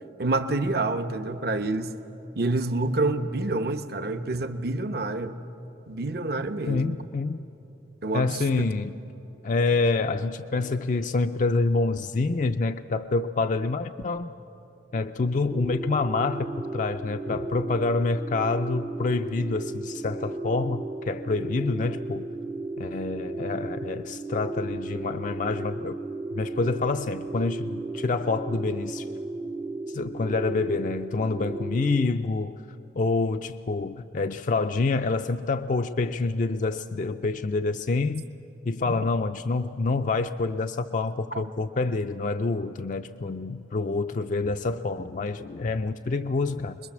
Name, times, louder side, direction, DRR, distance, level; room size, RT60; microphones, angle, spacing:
voice 1, 0.2-2.0 2.4-5.4 5.9-7.0 8.0-8.4, right 2 dB, 60° right, 8 dB, 0.9 m, -27 dB
voice 2, 6.7-7.4 8.1-9.0 9.4-14.3 14.9-22.3 22.8-26.0 26.3-29.1 29.9-32.5 32.9-38.2 38.7-46.8, left 3 dB, 45° left, 7 dB, 0.4 m, -27 dB
sound 1, 15.5-32.1, right 2 dB, 10° right, 0.6 m, -35 dB
25.5 x 21.5 x 7.3 m, 3.0 s
head